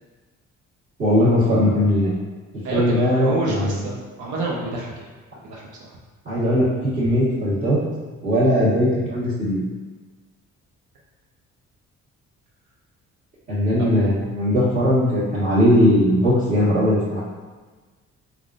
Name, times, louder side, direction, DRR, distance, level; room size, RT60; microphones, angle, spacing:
voice 1, 1.0-2.1 2.7-3.7 6.2-7.8 8.2-9.6 13.5-17.2, equal, 30° right, -13 dB, 1.3 m, -19 dB
voice 2, 2.6-5.1 5.4-6.0 13.8-13.9, right 2 dB, 80° right, -2 dB, 0.7 m, -29 dB
3.5 x 2.4 x 2.5 m, 1.3 s
cardioid pair, 90°, 30 cm